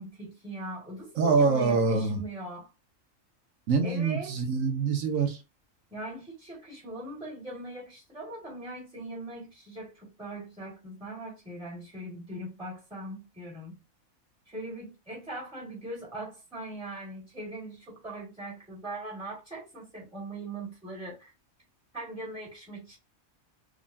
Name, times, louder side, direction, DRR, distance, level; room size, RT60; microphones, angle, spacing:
voice 1, 0.0-2.7 3.8-4.3 5.9-13.8 14.5-21.3 21.9-23.0, right 1 dB, 5° right, 1.7 m, -40 dB
voice 2, 1.1-2.2 3.7-5.4, right 4 dB, 80° right, 1.2 m, -25 dB
3.8 x 2.9 x 2.6 m
omnidirectional pair, 1.4 m